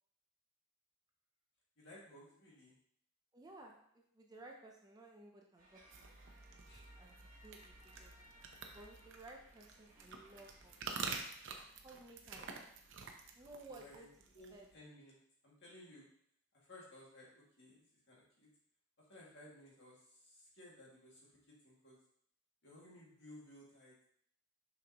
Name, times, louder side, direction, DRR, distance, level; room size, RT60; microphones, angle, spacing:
voice 1, 1.8-2.7 6.6-6.9 13.7-14.1 14.3-15.2 15.4-16.1 16.7-17.8 18.1-18.5 19.1-22.0 22.6-23.9, left 1 dB, 55° left, -5 dB, 2.1 m, -58 dB
voice 2, 3.3-6.1 6.9-7.2 7.4-8.1 8.7-10.7 11.1-11.2 11.8-12.5 13.3-14.1 14.5-14.7, right 2 dB, 15° right, 0 dB, 0.5 m, -56 dB
sound 1, 5.6-11.2, right 1 dB, 35° right, 1.4 m, -64 dB
sound 2, 5.9-14.7, right 4 dB, 55° right, 0.7 m, -49 dB
6.6 x 5.1 x 2.9 m, 0.68 s
head